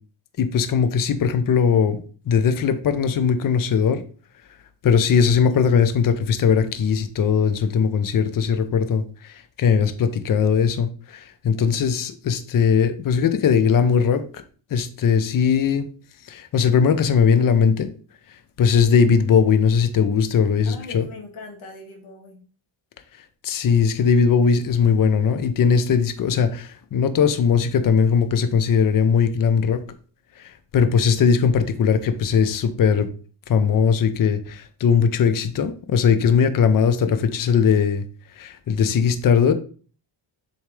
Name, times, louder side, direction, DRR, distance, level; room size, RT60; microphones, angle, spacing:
voice 1, 0.4-2.0 2.3-4.0 4.8-14.4 14.7-15.9 16.3-17.9 18.6-21.1 23.4-29.8 30.4-33.1 33.5-38.0 38.4-39.5, left 6 dB, 45° left, 0.7 m, -19 dB
voice 2, 20.7-22.4, left 3 dB, 80° left, 2.1 m, -40 dB
7.0 x 4.4 x 3.2 m
cardioid pair, 120°, 47 cm